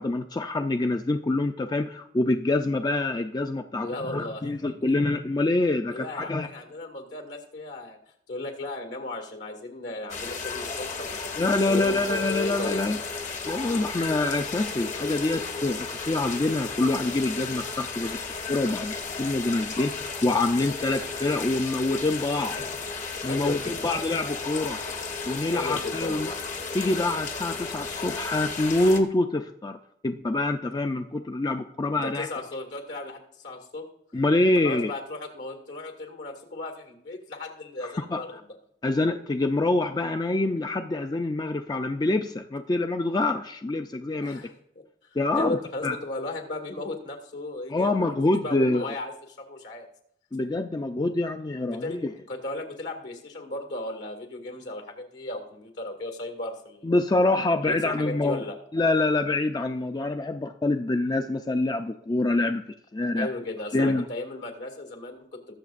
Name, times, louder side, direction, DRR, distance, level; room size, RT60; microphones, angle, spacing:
voice 1, 0.0-6.5 11.4-13.0 13.5-18.2 18.5-22.6 23.2-24.8 25.3-26.3 26.7-29.8 30.0-32.3 34.1-34.9 37.8-38.2 38.8-44.4 45.2-45.6 45.8-46.0 47.7-48.9 50.3-52.1 56.8-58.4 58.7-62.6 62.9-63.3 63.7-64.0, left 2 dB, 25° left, 7 dB, 0.4 m, -26 dB
voice 2, 3.8-4.4 5.9-8.0 8.3-12.8 22.4-22.7 23.3-23.7 25.5-26.4 31.9-33.9 34.4-38.4 44.2-44.8 45.3-49.9 51.6-52.0 52.3-56.9 57.6-58.6 63.1-65.5, left 2 dB, 70° left, 4 dB, 2.1 m, -36 dB
sound 1, 10.1-29.0, left 4 dB, 45° left, 1.1 m, -34 dB
21.0 x 7.0 x 2.5 m, 0.71 s
head